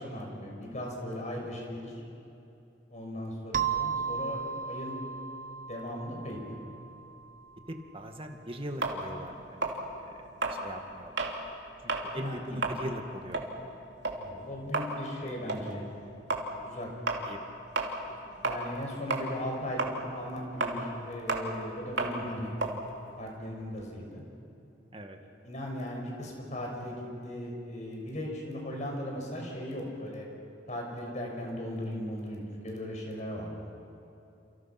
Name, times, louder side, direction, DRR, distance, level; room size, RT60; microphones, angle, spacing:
voice 1, 0.0-1.9 2.9-5.0 5.6-6.4 12.1-12.6 14.1-15.8 16.6-16.9 18.4-19.8 20.1-22.5 23.2-24.2 25.4-30.3 30.7-33.6, equal, 40° left, 0 dB, 6.5 m, -38 dB
sound 1, 3.5-7.9, right 7 dB, 50° right, 1.1 m, -35 dB
voice 2, 7.7-9.7 10.0-10.1 10.5-11.3 11.8-13.5 17.2-17.4 24.9-25.2, equal, 30° right, 4 dB, 2.1 m, -40 dB
sound 2, 8.8-11.4 11.8-12.1 12.5-18.8 19.1-23.9, right 2 dB, 80° right, 2.9 m, -33 dB
29.5 x 29.0 x 6.1 m, 2.8 s
head